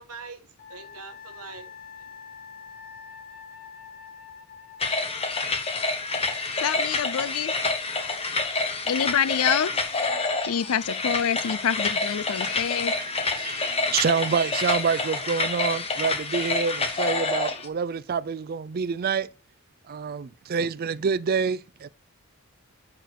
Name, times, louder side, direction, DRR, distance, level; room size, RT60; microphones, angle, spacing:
voice 1, 0.0-2.1, right 4 dB, 90° right, 1.4 m, -44 dB
Wind instrument woodwind instrument, 0.6-5.4, left 7 dB, 50° left, 2.7 m, -45 dB
sound 1, 4.8-17.7, left 3 dB, 25° left, 1.0 m, -28 dB
voice 2, 6.6-7.5 8.8-9.7 10.5-12.9, left 8 dB, 75° left, 0.5 m, -26 dB
voice 3, 12.7-19.3 19.9-21.9, right 6 dB, 45° right, 0.4 m, -27 dB
7.0 x 6.0 x 4.6 m
head